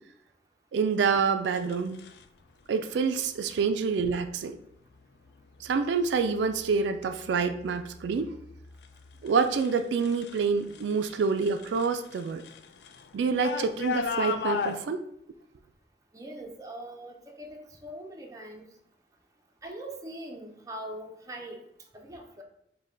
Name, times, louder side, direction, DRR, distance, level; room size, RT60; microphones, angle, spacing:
voice 1, 0.7-2.1 2.7-4.6 5.6-8.3 9.2-12.4 13.1-15.0, right 5 dB, 85° right, 0.3 m, -27 dB
sound 1, 1.5-2.2 3.4-3.7 4.3-4.7 5.3-5.8 6.1-10.4 10.7-14.8, left 6 dB, 70° left, 0.3 m, -37 dB
voice 2, 16.1-18.7 19.6-21.6 21.9-22.4, right 1 dB, 20° right, 0.5 m, -42 dB
5.2 x 2.2 x 3.7 m
head